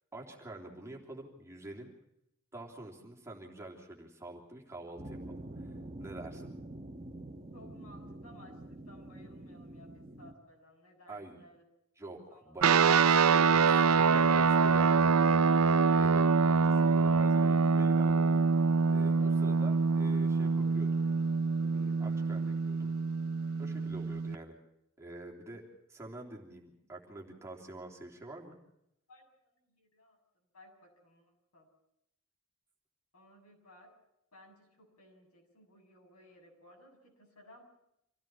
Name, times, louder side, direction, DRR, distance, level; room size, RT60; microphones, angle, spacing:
voice 1, 0.1-1.9 2.5-5.7 6.0-6.5 11.1-11.4 12.0-15.4 15.9-18.2 18.9-21.0 21.6-22.9 23.6-24.6 25.0-25.6 25.9-28.5, right 2 dB, 15° right, -1 dB, 3.3 m, -47 dB
sound 1, 5.0-10.3, right 1 dB, 30° right, 1.6 m, -46 dB
voice 2, 7.5-11.6 12.3-12.6 29.1-29.3 29.7-30.2 30.5-31.7 33.1-33.9 34.3-37.6, left 1 dB, 80° left, 1 dB, 7.3 m, -58 dB
sound 2, 12.6-24.3, right 5 dB, 75° right, 0.7 m, -25 dB
26.5 x 16.0 x 6.1 m, 0.81 s
head